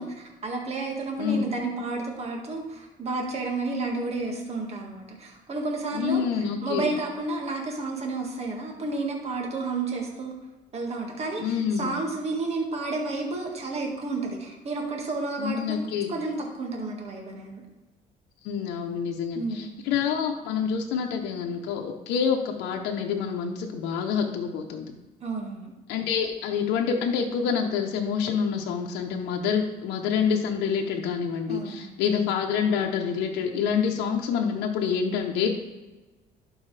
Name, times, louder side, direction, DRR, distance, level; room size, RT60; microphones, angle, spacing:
voice 1, 0.0-10.3 10.7-15.8 16.1-17.6 19.3-19.7 25.2-25.7 31.5-32.0, right 3 dB, 40° right, 0 dB, 1.8 m, -31 dB
voice 2, 1.2-1.5 5.9-6.9 11.4-11.9 15.4-16.1 18.4-24.9 25.9-35.5, left 7 dB, 90° left, 2 dB, 0.8 m, -27 dB
12.0 x 4.5 x 3.3 m, 1.2 s
cardioid pair, 110°, 17 cm